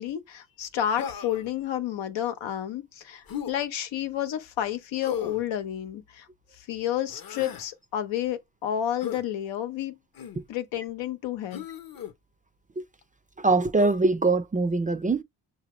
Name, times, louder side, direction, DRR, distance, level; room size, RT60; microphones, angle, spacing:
voice 1, 0.0-6.3 6.6-10.0 10.5-11.6, left 11 dB, 90° left, 0.9 m, -30 dB
Human voice, 1.0-1.5 3.3-3.5 5.0-5.5 7.1-7.7 9.0-9.2 10.1-10.4 11.5-12.1 13.8-14.0, left 8 dB, 50° left, 0.8 m, -36 dB
voice 2, 13.4-15.2, right 3 dB, 20° right, 0.4 m, -22 dB
5.9 x 2.7 x 3.0 m
cardioid pair, 80°, 44 cm